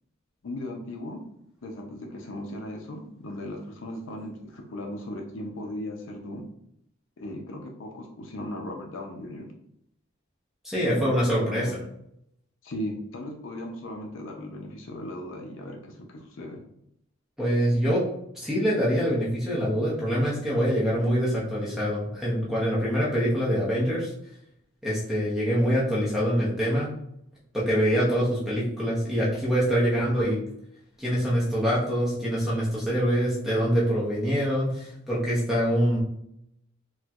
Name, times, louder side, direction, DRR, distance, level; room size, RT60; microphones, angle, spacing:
voice 1, 0.4-1.2 1.6-6.4 7.2-9.5 10.9-11.7 12.6-16.6, left 1 dB, 65° left, 2 dB, 0.5 m, -37 dB
voice 2, 10.6-11.7 17.4-18.0 18.4-24.1 24.8-26.9 27.5-30.4 31.0-36.0, equal, ahead, -7 dB, 0.7 m, -25 dB
4.2 x 2.2 x 2.3 m, 0.76 s
head